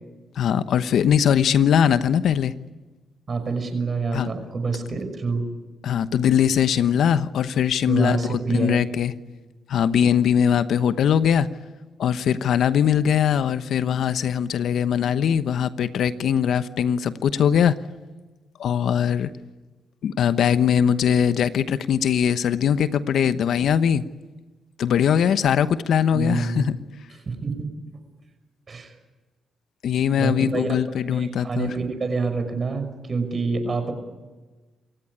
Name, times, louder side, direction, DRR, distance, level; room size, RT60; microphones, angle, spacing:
voice 1, 0.4-2.5 4.1-4.3 5.8-9.1 9.7-11.5 12.0-17.7 18.6-19.3 20.0-24.0 24.8-26.8 29.8-31.7, left 8 dB, 70° left, 13 dB, 1.0 m, -21 dB
voice 2, 3.3-5.4 7.9-9.0 26.1-26.7 27.3-27.7 28.7-28.9 30.2-30.8 31.1-33.9, right 4 dB, 45° right, 8 dB, 5.9 m, -27 dB
28.0 x 16.0 x 9.9 m, 1.3 s
supercardioid pair, 65°, 0 cm